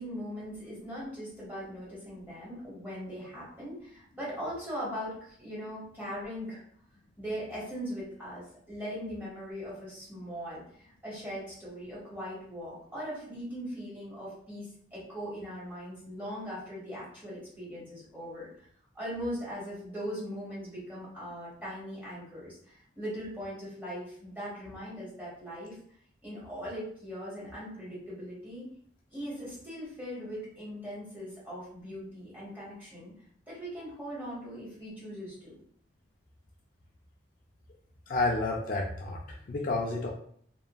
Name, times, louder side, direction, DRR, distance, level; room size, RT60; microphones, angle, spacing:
voice 1, 0.0-6.6 7.2-18.5 18.9-25.8 26.2-28.7 29.1-33.1 33.5-35.6, equal, 10° right, -8 dB, 1.2 m, -40 dB
voice 2, 38.1-40.1, left 2 dB, 45° left, -1 dB, 0.4 m, -30 dB
2.9 x 2.5 x 2.2 m, 0.62 s
head